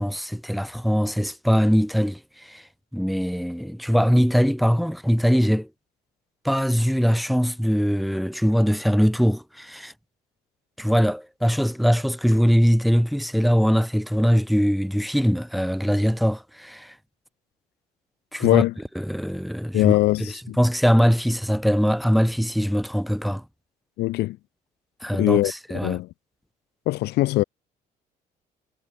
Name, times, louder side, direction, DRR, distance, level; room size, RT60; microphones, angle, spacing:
voice 1, 0.0-2.6 2.9-5.7 6.4-9.9 10.8-16.9 18.3-18.6 19.0-23.4 25.0-26.0, equal, ahead, 3.7 m, -22 dB
voice 2, 18.4-18.7 19.7-20.6 24.0-24.4 25.2-26.1 26.9-27.4, left 17 dB, 80° left, 0.9 m, -21 dB
cardioid pair, 110°, 17 cm